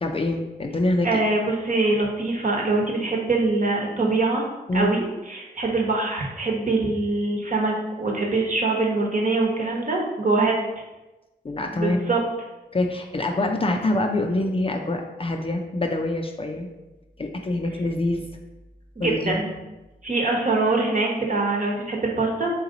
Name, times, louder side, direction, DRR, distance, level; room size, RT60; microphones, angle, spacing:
voice 1, 0.0-1.2 4.7-5.0 11.4-12.1 12.7-16.7 17.2-18.3 19.0-19.4, left 2 dB, 30° left, 3 dB, 0.5 m, -25 dB
voice 2, 1.0-4.4 4.7-10.6 11.7-12.2 19.0-19.5 20.0-22.5, right 3 dB, 45° right, -1 dB, 1.1 m, -23 dB
3.8 x 2.9 x 3.9 m, 1.1 s
cardioid pair, 45°, 19 cm